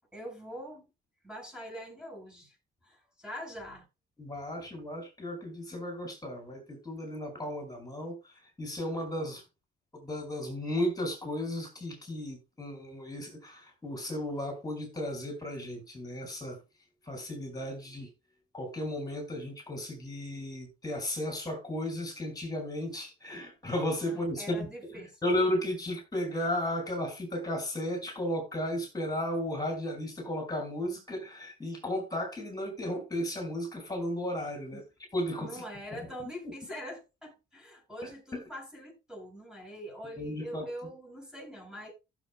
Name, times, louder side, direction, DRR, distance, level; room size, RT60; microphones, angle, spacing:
voice 1, 0.1-0.9 1.2-2.6 2.8-3.9 24.1-25.2 34.7-34.8 35.4-41.9, equal, 5° right, 6.7 m, -43 dB
voice 2, 4.2-9.4 9.9-16.6 17.0-18.1 18.5-34.8 35.1-35.6 38.0-38.4 40.2-40.7, left 1 dB, 20° left, 5.5 m, -34 dB
15.5 x 7.5 x 2.2 m
cardioid pair, 90°, 20 cm